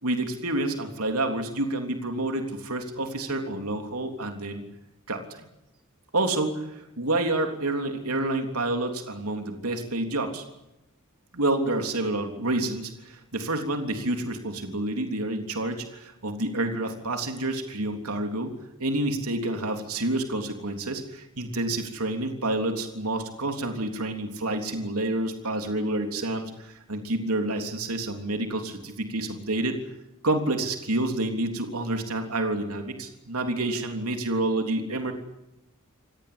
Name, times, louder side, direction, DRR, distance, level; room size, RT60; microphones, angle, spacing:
voice 1, 0.0-4.6 5.1-5.4 6.1-10.4 11.3-18.5 18.8-29.8 30.2-35.1, right 2 dB, 80° right, 4 dB, 3.4 m, -28 dB
27.5 x 18.0 x 8.7 m, 0.90 s
head